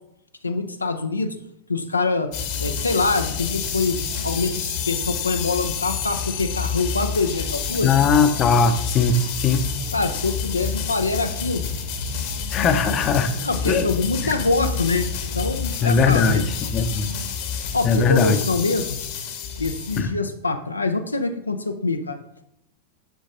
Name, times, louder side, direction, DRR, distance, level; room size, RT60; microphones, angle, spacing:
voice 1, 0.4-1.4 1.7-2.3 2.6-4.0 4.2-7.9 9.9-11.6 13.4-15.1 15.3-16.4 17.7-19.0 19.6-22.2, left 3 dB, 80° left, 7 dB, 0.6 m, -24 dB
sound 1, 2.3-20.0, left 6 dB, 45° left, 1.1 m, -29 dB
voice 2, 7.8-9.7 12.5-13.3 13.7-13.9 14.2-14.3 15.8-17.1 17.8-18.4 20.0-20.1, left 5 dB, 30° left, 9 dB, 0.8 m, -19 dB
8.1 x 6.3 x 4.0 m, 0.78 s
figure-of-eight pair, 90°, 0 cm